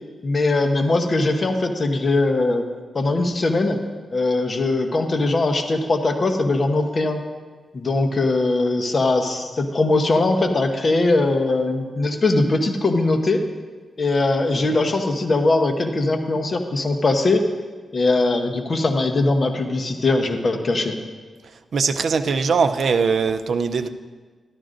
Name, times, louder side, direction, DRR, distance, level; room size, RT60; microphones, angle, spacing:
voice 1, 0.2-2.6 2.9-3.8 4.1-7.2 7.7-13.4 14.0-17.5 17.9-21.0, left 2 dB, 45° left, 5 dB, 0.9 m, -20 dB
voice 2, 21.7-23.9, right 5 dB, 70° right, 9 dB, 0.5 m, -21 dB
12.5 x 12.0 x 2.6 m, 1.4 s
cardioid pair, 90°, 0 cm